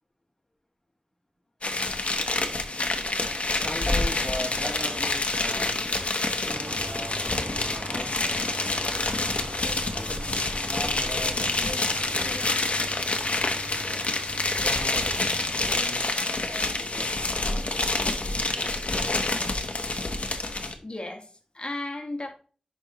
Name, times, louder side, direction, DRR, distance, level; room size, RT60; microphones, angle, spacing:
sound 1, 1.6-20.7, left 2 dB, 80° left, 1.1 m, -27 dB
voice 1, 3.5-5.9 6.3-8.1 8.7-10.1 10.6-14.1 14.6-17.7 18.3-18.7, equal, 10° left, 3.2 m, -40 dB
sound 2, 6.5-15.8, right 1 dB, 80° right, 1.8 m, -41 dB
voice 2, 20.1-22.3, left 2 dB, 50° left, 1.5 m, -37 dB
10.5 x 5.3 x 3.1 m
wide cardioid pair, 45°, 2 cm